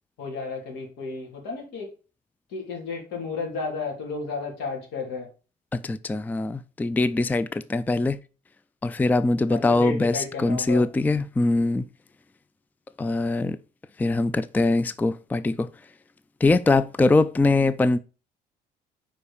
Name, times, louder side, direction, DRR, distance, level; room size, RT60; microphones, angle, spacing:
voice 1, 0.2-1.9 2.5-5.3 9.5-10.8, left 4 dB, 85° left, 3.1 m, -33 dB
voice 2, 5.7-8.2 8.8-11.8 13.0-13.6 14.0-15.7 16.4-18.0, left 2 dB, 10° left, 0.4 m, -22 dB
5.4 x 4.9 x 6.4 m
cardioid pair, 110°, 17 cm